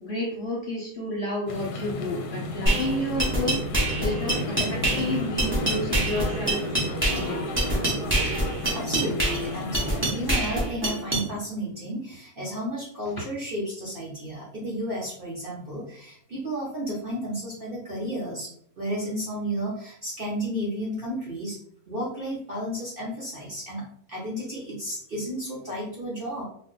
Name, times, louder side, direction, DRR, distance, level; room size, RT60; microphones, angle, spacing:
voice 1, 0.0-3.5 4.0-6.7 7.1-7.4, left 1 dB, 55° left, -3 dB, 0.8 m, -30 dB
sound 1, 1.5-10.4, left 1 dB, 90° left, 1.2 m, -34 dB
sound 2, 2.7-11.3, right 1 dB, 15° right, 0.5 m, -26 dB
sound 3, 3.1-8.6, right 3 dB, 80° right, 1.1 m, -38 dB
voice 2, 8.7-9.8 10.1-18.5 18.8-21.6 21.9-23.8 24.1-26.4, equal, 45° right, -6 dB, 0.8 m, -32 dB
2.5 x 2.3 x 3.7 m, 0.65 s
omnidirectional pair, 1.7 m